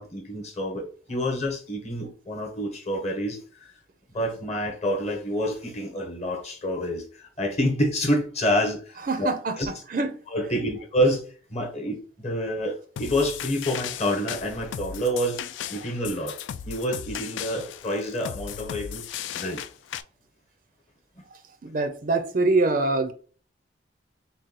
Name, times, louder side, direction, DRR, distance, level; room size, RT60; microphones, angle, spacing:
voice 1, 0.0-3.7 4.1-9.3 9.6-9.7 10.3-15.4 15.7-16.4 16.6-19.0 19.3-19.7, equal, 35° left, 1.0 m, -28 dB
voice 2, 9.0-10.2 10.6-10.7 15.8-15.9 21.3-23.1, right 3 dB, 45° right, 0.4 m, -25 dB
sound 1, 13.0-20.0, left 9 dB, 80° left, 0.3 m, -36 dB
3.8 x 2.2 x 4.1 m
head